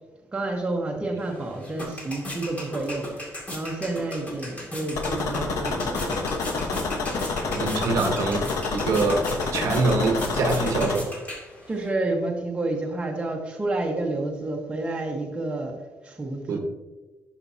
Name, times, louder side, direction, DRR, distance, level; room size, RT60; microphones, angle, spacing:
voice 1, 0.3-6.3 11.7-16.6, right 2 dB, 20° right, 0 dB, 1.2 m, -30 dB
sound 1, 1.2-11.9, left 1 dB, 25° left, 2.2 m, -38 dB
sound 2, 5.0-11.0, left 3 dB, 75° left, 1.1 m, -28 dB
voice 2, 7.5-8.4 8.7-9.2 9.5-11.1 16.5-16.6, right 3 dB, 70° right, 4 dB, 1.0 m, -24 dB
10.5 x 6.0 x 2.7 m, 1.1 s
cardioid pair, 145°, 6 cm